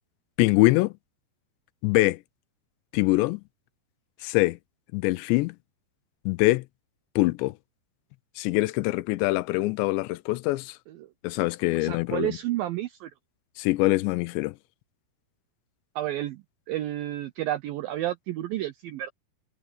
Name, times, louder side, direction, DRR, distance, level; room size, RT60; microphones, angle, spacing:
voice 1, 0.4-0.9 1.8-2.2 2.9-3.4 4.2-4.6 4.9-5.6 6.3-6.6 7.2-7.5 8.4-10.8 11.2-12.4 13.6-14.6, left 20 dB, 85° left, 2.9 m, -24 dB
voice 2, 11.8-13.1 16.0-19.1, right 14 dB, 85° right, 2.0 m, -31 dB
omnidirectional pair, 5.0 m